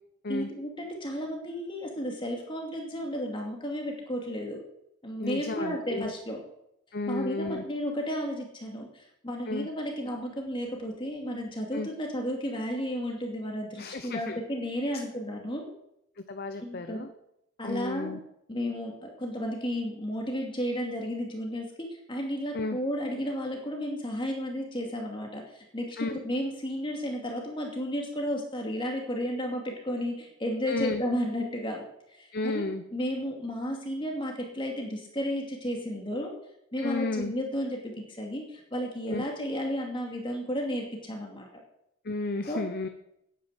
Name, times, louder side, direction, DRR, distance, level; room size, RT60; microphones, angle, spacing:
voice 1, 0.3-4.6 5.0-6.4 7.1-15.7 16.6-17.0 17.6-18.1 18.5-31.8 32.1-32.6 32.9-36.3 36.7-41.6 42.5-42.6, equal, 25° left, 0 dB, 2.5 m, -33 dB
voice 2, 5.2-6.1 6.9-7.6 9.5-9.7 11.7-11.9 13.8-14.4 16.3-17.1 17.6-18.2 22.5-22.8 26.0-26.2 30.7-31.0 32.3-32.8 36.8-37.3 39.1-39.2 42.0-42.9, left 2 dB, 45° left, 8 dB, 0.8 m, -32 dB
10.0 x 9.7 x 8.0 m, 0.79 s
head